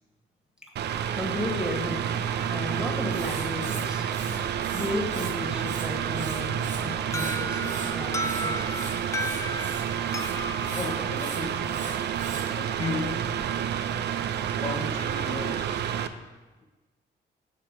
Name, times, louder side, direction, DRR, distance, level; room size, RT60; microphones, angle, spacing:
Mechanical fan, 0.8-16.1, right 9 dB, 60° right, 0.5 m, -29 dB
voice 1, 1.1-2.1 2.5-4.4 4.7-8.9, left 1 dB, 5° right, 1 dB, 1.3 m, -34 dB
Writing, 3.1-5.3 5.6-6.8 7.1-12.5, right 4 dB, 40° right, 1.1 m, -41 dB
Alarm, 7.1-11.9, equal, 15° left, 0.4 m, -35 dB
voice 2, 10.7-11.8 12.6-13.4 14.6-15.9, left 3 dB, 35° left, 1 dB, 0.9 m, -35 dB
6.0 x 4.4 x 6.5 m, 1.2 s
cardioid pair, 90°, 20 cm